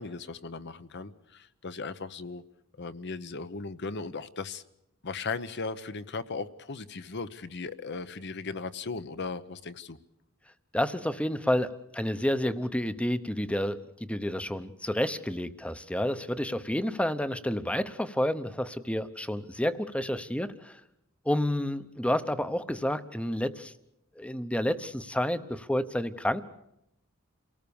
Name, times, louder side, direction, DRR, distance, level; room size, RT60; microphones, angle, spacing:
voice 1, 0.0-2.4 2.8-4.6 5.0-10.0, left 4 dB, 55° left, 13 dB, 1.0 m, -37 dB
voice 2, 10.7-20.8 21.2-23.7 24.2-26.4, left 1 dB, 5° left, 12 dB, 0.9 m, -30 dB
28.5 x 19.0 x 7.1 m, 0.84 s
head